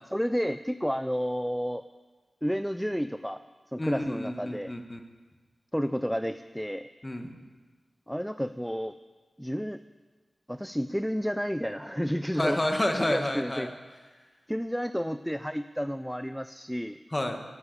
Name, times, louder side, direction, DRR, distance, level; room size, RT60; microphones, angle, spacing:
voice 1, 0.1-1.8 2.4-3.4 3.7-4.7 5.7-6.9 8.1-8.9 9.4-9.8 10.5-12.6 12.9-13.7 14.5-17.0, equal, ahead, 11 dB, 0.5 m, -31 dB
voice 2, 3.8-5.0 7.0-7.4 12.3-13.7 17.1-17.4, left 1 dB, 25° left, 4 dB, 1.9 m, -30 dB
14.0 x 9.5 x 8.4 m, 1.4 s
cardioid pair, 40°, 0 cm